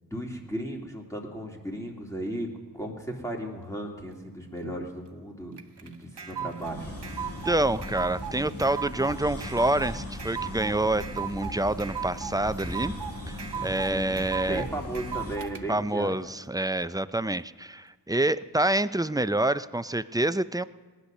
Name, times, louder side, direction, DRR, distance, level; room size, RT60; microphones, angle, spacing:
voice 1, 0.0-2.5 2.7-6.9 13.8-14.2 14.5-16.2, right 1 dB, 10° left, -1 dB, 2.8 m, -36 dB
sound 1, 5.6-15.6, right 8 dB, 80° right, 0.8 m, -37 dB
sound 2, 6.5-15.4, left 1 dB, 35° left, 2.2 m, -38 dB
voice 2, 7.4-12.9 13.3-14.6 15.7-20.6, right 1 dB, 10° right, 14 dB, 0.4 m, -27 dB
19.0 x 10.0 x 6.6 m, 1.4 s
wide cardioid pair, 45°, 40 cm